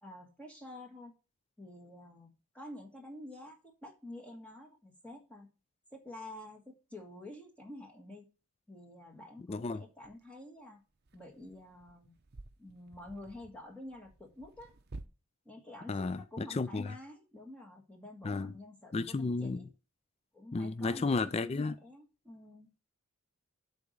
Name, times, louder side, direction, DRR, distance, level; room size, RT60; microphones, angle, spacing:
voice 1, 0.0-1.1 1.6-5.5 5.9-8.3 8.7-10.8 11.1-12.1 12.6-14.7 15.4-19.7 20.3-22.7, left 1 dB, 5° left, 1.5 m, -49 dB
sound 1, 9.1-9.2 10.0-10.2 10.9-15.1, right 2 dB, 45° right, 0.7 m, -52 dB
voice 2, 9.5-9.8 15.9-16.9 18.2-18.5 18.9-19.6 20.5-21.8, left 3 dB, 25° left, 0.3 m, -33 dB
8.3 x 4.1 x 6.5 m
head